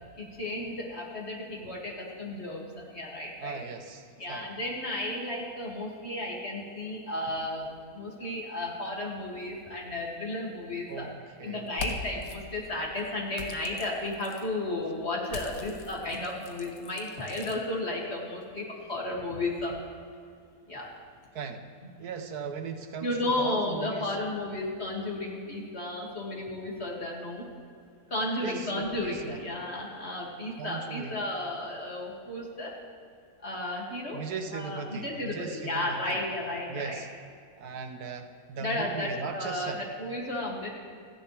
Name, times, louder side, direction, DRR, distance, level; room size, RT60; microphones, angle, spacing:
voice 1, 0.2-3.6 4.2-11.1 11.4-19.8 20.7-20.9 23.0-27.5 28.1-32.7 33.4-34.2 34.5-37.0 38.6-39.7 40.0-40.7, left 1 dB, 40° left, -3 dB, 2.9 m, -33 dB
voice 2, 3.4-4.5 10.9-12.0 16.0-16.2 21.3-21.7 22.0-24.2 28.4-29.4 30.6-31.2 34.1-36.2 36.7-37.1 37.6-39.8, right 5 dB, 75° right, 7 dB, 1.4 m, -38 dB
sound 1, 11.7-12.4 13.3-14.5 15.2-17.6, left 4 dB, 65° left, 1.5 m, -41 dB
28.5 x 10.5 x 3.5 m, 2.3 s
omnidirectional pair, 1.7 m